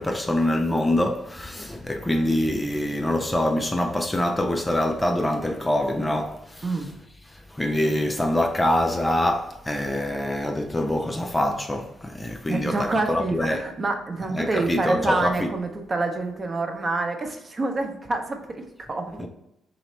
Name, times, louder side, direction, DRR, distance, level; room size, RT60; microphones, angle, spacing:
voice 1, 0.0-6.7 7.5-13.6 14.3-15.5, left 1 dB, 15° left, 0.4 m, -25 dB
voice 2, 12.5-19.3, right 3 dB, 30° right, 0.7 m, -27 dB
3.1 x 2.9 x 4.2 m
cardioid pair, 90°, 0 cm